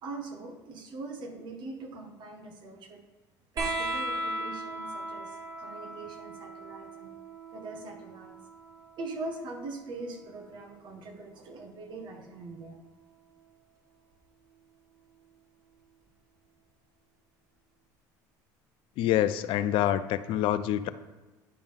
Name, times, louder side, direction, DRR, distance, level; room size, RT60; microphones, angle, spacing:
voice 1, 0.0-3.0 3.5-7.1 7.5-8.4 9.0-12.8, right 3 dB, 50° right, 4 dB, 1.5 m, -42 dB
sound 1, 3.6-10.6 12.0-12.8 14.1-14.2, right 1 dB, 35° right, 1.9 m, -38 dB
voice 2, 19.0-20.9, left 12 dB, 65° left, 13 dB, 0.4 m, -26 dB
10.5 x 3.8 x 5.3 m, 1.2 s
supercardioid pair, 90°, 10 cm